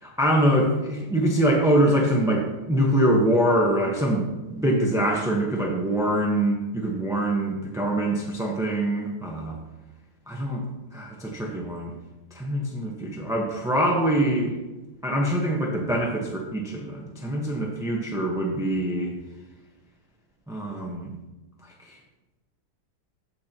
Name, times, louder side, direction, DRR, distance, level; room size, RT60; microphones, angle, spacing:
voice 1, 0.0-9.6 10.3-10.6 10.9-11.9 12.3-14.6 15.0-19.1 20.5-21.1 21.8-22.0, right 1 dB, ahead, -1 dB, 0.8 m, -24 dB
13.0 x 8.5 x 3.0 m, 1.1 s
omnidirectional pair, 2.1 m